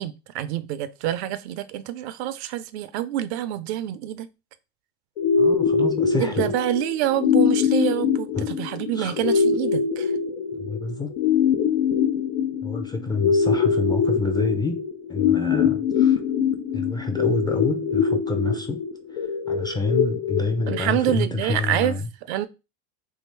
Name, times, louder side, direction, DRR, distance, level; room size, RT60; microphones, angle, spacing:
voice 1, 0.0-4.3 6.2-10.1 20.7-22.0 22.3-22.5, right 12 dB, 75° right, 0.6 m, -27 dB
sound 1, 5.2-21.2, left 6 dB, 75° left, 0.7 m, -23 dB
voice 2, 5.4-6.4 8.3-8.5 8.9-9.1 10.5-11.1 12.6-16.2 16.7-18.8 19.1-22.1, left 3 dB, 15° left, 0.5 m, -28 dB
3.5 x 2.4 x 4.5 m
hypercardioid pair, 100°, 33 cm